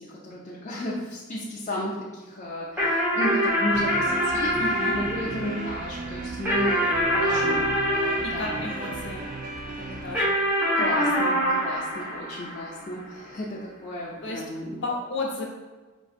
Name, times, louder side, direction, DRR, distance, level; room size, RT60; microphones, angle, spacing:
voice 1, 0.0-9.0 9.8-10.1 10.7-14.8, left 1 dB, 35° left, -6 dB, 0.4 m, -34 dB
sound 1, 2.8-9.5 10.1-13.0, equal, 10° right, 1.0 m, -25 dB
sound 2, 3.7-10.2, right 4 dB, 40° right, 0.3 m, -36 dB
voice 2, 4.6-5.3 7.2-7.8 8.2-9.3 9.8-10.4 14.2-14.4 14.8-15.5, left 2 dB, 60° left, -2 dB, 0.8 m, -33 dB
5.2 x 2.6 x 2.4 m, 1.3 s
head